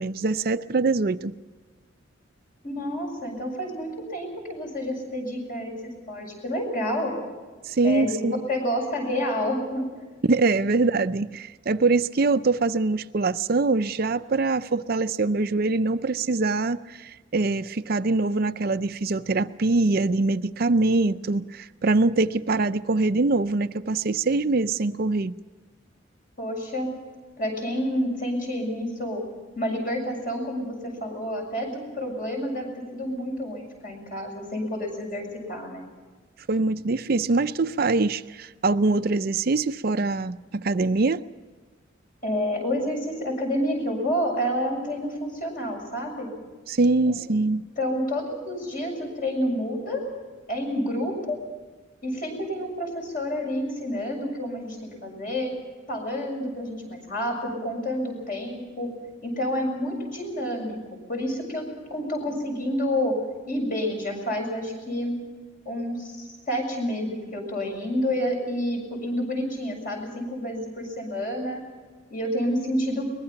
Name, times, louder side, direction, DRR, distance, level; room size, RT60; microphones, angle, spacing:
voice 1, 0.0-1.3 7.6-8.4 10.2-25.3 36.5-41.2 46.7-47.6, right 3 dB, 50° right, 11 dB, 0.5 m, -23 dB
voice 2, 2.6-7.1 7.8-9.9 26.4-26.9 27.4-29.2 29.6-35.9 42.2-46.3 47.1-47.2 47.8-50.0 50.5-51.4 52.0-55.5 55.9-58.9 59.2-60.8 61.1-63.2 63.5-65.2 65.7-71.6 72.1-73.1, equal, 45° left, 2 dB, 6.9 m, -29 dB
23.0 x 20.5 x 5.8 m, 1.4 s
head